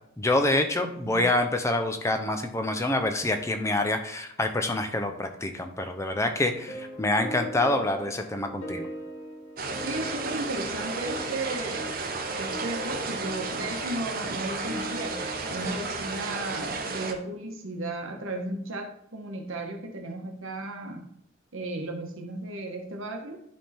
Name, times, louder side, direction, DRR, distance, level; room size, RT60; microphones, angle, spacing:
voice 1, 0.2-8.9, left 2 dB, 15° left, 6 dB, 0.6 m, -26 dB
voice 2, 0.8-1.2 9.8-12.0 12.3-15.2 15.5-21.1 21.5-23.4, right 2 dB, 80° right, 4 dB, 1.3 m, -35 dB
sound 1, 6.5-15.7, equal, 80° left, 1.3 m, -40 dB
sound 2, 9.6-17.1, right 3 dB, 45° right, 0.9 m, -33 dB
10.5 x 3.6 x 4.3 m, 0.71 s
head